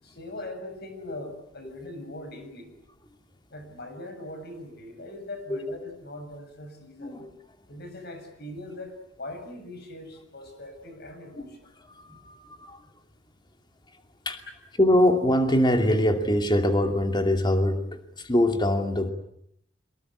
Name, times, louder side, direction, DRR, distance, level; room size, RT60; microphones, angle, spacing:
voice 1, 0.0-2.7 3.5-7.2 7.7-8.9 9.2-11.6, left 1 dB, 55° left, 6 dB, 7.2 m, -41 dB
voice 2, 7.0-7.3 11.3-11.5 11.8-12.9 14.3-14.4 14.8-19.1, left 1 dB, 25° left, 6 dB, 2.6 m, -23 dB
24.5 x 21.5 x 9.9 m, 0.72 s
head